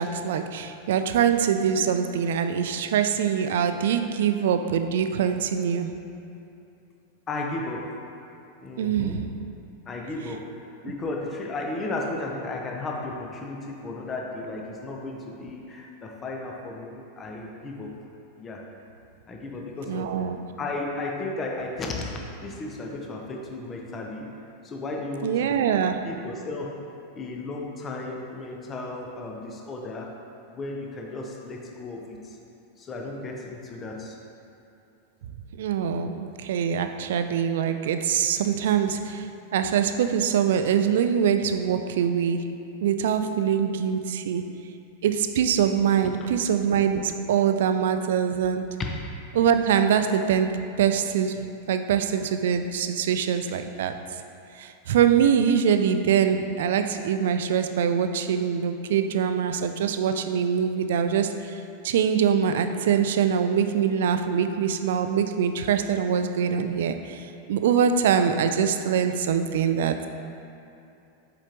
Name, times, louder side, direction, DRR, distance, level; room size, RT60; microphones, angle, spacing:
voice 1, 0.0-6.0 8.8-9.3 10.8-10.9 19.9-20.4 25.2-26.1 35.6-42.5 42.8-44.5 45.0-48.8 49.3-51.4 51.7-54.0 54.6-61.6 61.8-70.1, right 8 dB, 55° right, 8 dB, 0.3 m, -24 dB
voice 2, 7.3-8.0 8.6-9.2 9.9-17.9 18.4-18.7 19.3-20.3 20.6-24.3 24.6-26.8 27.1-30.1 30.5-32.4 32.8-34.1 46.2-46.3, left 2 dB, 25° left, 0 dB, 0.8 m, -34 dB
7.3 x 5.0 x 3.0 m, 2.8 s
figure-of-eight pair, 90°, 0 cm